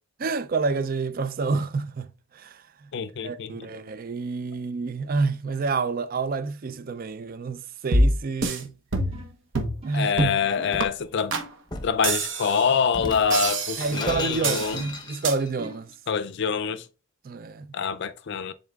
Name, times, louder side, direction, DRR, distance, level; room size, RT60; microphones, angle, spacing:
voice 1, 0.2-2.1 2.3-2.9 3.2-8.7 9.8-10.1 13.8-15.9 17.2-17.7, right 4 dB, 45° right, 0.4 m, -28 dB
voice 2, 2.9-3.7 9.9-11.4 11.8-14.8 16.1-16.9 17.7-18.5, left 6 dB, 55° left, 0.4 m, -25 dB
sound 1, 7.9-8.6 8.9-9.3 9.5-9.8 10.2-10.4 10.8-10.9 11.3-11.5 12.0-12.7 13.3-14.0 14.4-14.7 15.2-15.4, right 2 dB, 60° right, 0.9 m, -25 dB
sound 2, 9.1-9.4 9.8-10.1 10.6-10.8 11.3-11.6 13.0-13.4 13.9-14.3 14.7-15.1 15.6-15.9, right 2 dB, 30° right, 1.7 m, -42 dB
Shatter, 10.7-11.0 11.7-12.0 12.9-15.5, left 2 dB, 20° left, 0.8 m, -36 dB
10.5 x 3.8 x 2.4 m
head